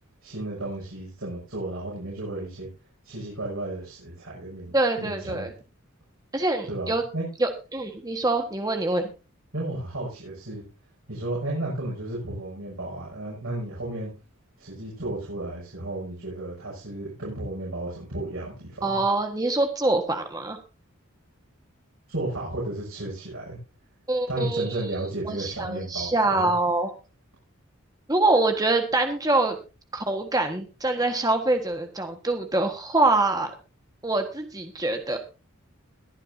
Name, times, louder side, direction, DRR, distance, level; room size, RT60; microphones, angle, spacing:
voice 1, 0.2-2.7 3.0-4.7 5.0-5.5 6.7-7.2 9.5-10.6 11.1-14.1 14.6-19.0 22.1-23.6 24.3-26.5, right 1 dB, 85° right, -5 dB, 6.5 m, -33 dB
voice 2, 4.7-5.5 6.3-7.0 7.4-9.1 18.8-20.6 24.1-25.0 25.2-26.9 28.1-29.6 29.9-33.5 34.0-35.2, right 2 dB, 15° right, 5 dB, 1.5 m, -25 dB
22.0 x 9.0 x 2.7 m, 0.31 s
head